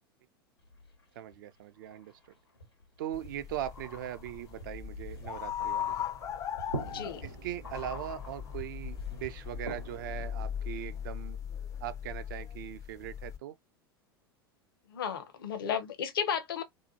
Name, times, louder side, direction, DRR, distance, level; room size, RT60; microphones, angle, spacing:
sound 1, 0.6-1.4 1.8-9.7 9.9-10.0, left 2 dB, 90° left, 0.9 m, -48 dB
voice 1, 1.2-2.2 3.0-6.1 7.2-11.4 11.8-13.6, right 12 dB, 60° right, 0.4 m, -40 dB
sound 2, 3.1-13.4, left 9 dB, 25° left, 0.4 m, -39 dB
sound 3, 4.6-12.5, right 2 dB, 85° right, 0.8 m, -46 dB
voice 2, 6.9-7.2 14.9-16.6, left 8 dB, 65° left, 0.6 m, -33 dB
2.7 x 2.2 x 2.7 m
figure-of-eight pair, 85°, 12 cm